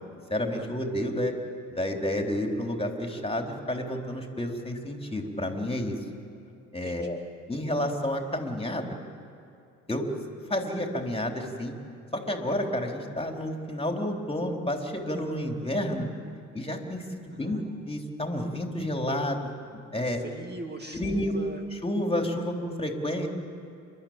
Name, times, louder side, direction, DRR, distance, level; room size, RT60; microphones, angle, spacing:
voice 1, 0.3-1.3 1.7-6.0 6.7-7.2 7.5-9.0 9.9-10.0 10.5-11.7 12.1-16.1 16.5-17.6 17.9-19.5 19.9-20.2 20.9-21.3 21.8-23.3, left 1 dB, 15° left, 2 dB, 3.9 m, -30 dB
voice 2, 17.3-17.6 20.0-21.6, right 2 dB, 25° right, 4 dB, 2.1 m, -41 dB
29.5 x 12.5 x 8.9 m, 2.5 s
hypercardioid pair, 50°, 42 cm